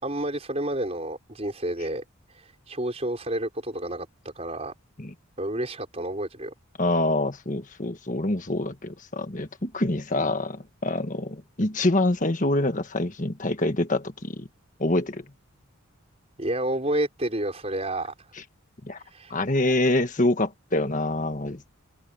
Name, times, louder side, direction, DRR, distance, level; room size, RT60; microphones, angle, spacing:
voice 1, 0.0-2.0 2.3-4.1 4.3-4.7 5.4-6.5 16.4-18.3 19.0-19.3, right 1 dB, 30° right, 5.1 m, -30 dB
voice 2, 6.8-14.5 14.8-15.2 18.8-19.0 19.3-21.7, left 2 dB, 35° left, 1.6 m, -26 dB
open air
head